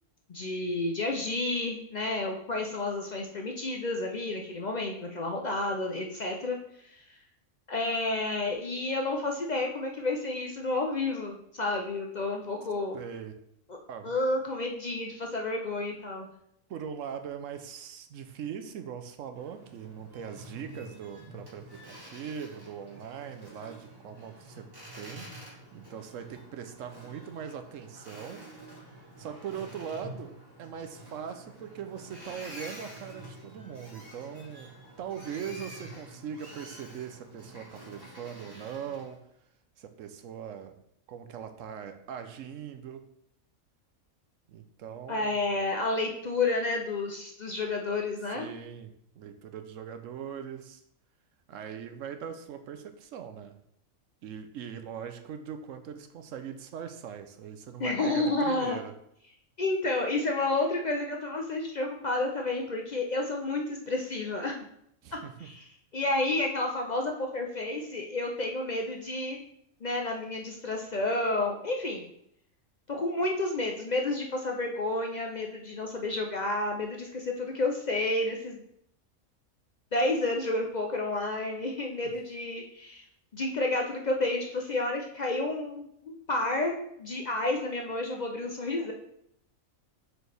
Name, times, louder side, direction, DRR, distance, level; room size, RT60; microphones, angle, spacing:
voice 1, 0.3-6.6 6.8-7.0 7.7-13.0 13.7-13.8 14.0-16.3 45.1-48.5 57.8-58.8 59.6-64.6 65.1-65.6 65.9-69.4 69.8-72.1 72.9-78.6 79.9-83.0 83.3-88.9, left 2 dB, 55° left, 1 dB, 0.5 m, -30 dB
voice 2, 12.9-13.3 13.9-14.1 16.7-24.7 24.9-28.5 29.2-39.2 39.8-40.7 41.1-43.0 44.5-45.4 48.3-50.8 51.5-53.6 54.2-58.9 65.0-65.5, right 8 dB, 70° right, 8 dB, 1.0 m, -41 dB
Boat Water vehicle, 19.3-39.2, right 1 dB, 15° right, 1.4 m, -48 dB
6.5 x 4.5 x 3.3 m, 0.72 s
omnidirectional pair, 1.5 m